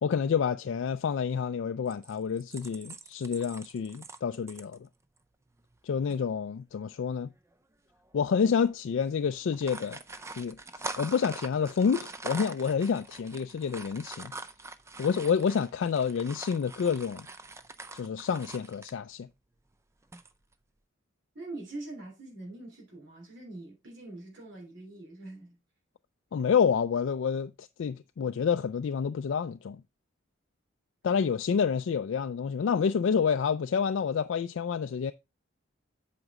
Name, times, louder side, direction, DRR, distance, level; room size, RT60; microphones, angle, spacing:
voice 1, 0.0-4.8 5.8-7.3 8.1-10.0 10.4-10.6 11.0-14.3 15.0-17.3 17.9-19.3 26.3-29.8 31.0-35.1, left 6 dB, 60° left, 0.3 m, -28 dB
sound 1, 1.9-4.8 5.2-5.3 5.6-5.8 6.1-6.2 7.1-7.5 8.1-8.2 8.5-8.7 9.4-19.0 20.0-20.5, right 3 dB, 15° right, 0.4 m, -44 dB
voice 2, 21.3-25.6 31.1-31.3, right 2 dB, 55° right, 3.3 m, -43 dB
8.0 x 5.1 x 3.5 m
head